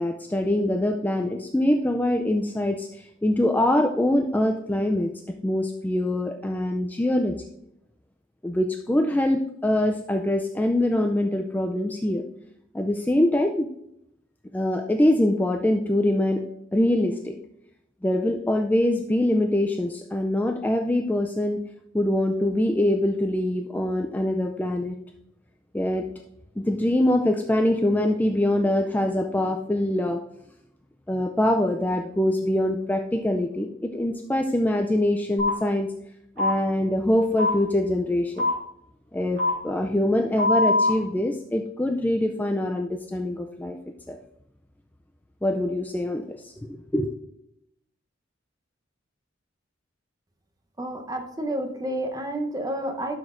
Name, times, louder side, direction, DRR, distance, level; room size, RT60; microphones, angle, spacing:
voice 1, 0.0-5.1 5.4-7.4 8.4-12.2 12.7-13.7 14.5-16.4 16.7-17.4 18.0-21.6 21.9-25.0 25.7-26.0 26.6-30.2 31.1-33.7 33.9-35.9 36.4-38.5 39.1-39.4 39.6-43.8 44.1-44.2 45.4-47.1, left 1 dB, 10° left, 4 dB, 0.3 m, -24 dB
sound 1, 35.4-35.5 36.4-36.5 37.4-37.5 38.4-38.5 39.4-39.5 40.4-40.9, left 2 dB, 60° right, 3.5 m, -21 dB
voice 2, 50.8-53.1, right 1 dB, 20° right, 4 dB, 0.8 m, -30 dB
12.0 x 6.1 x 2.5 m, 0.78 s
head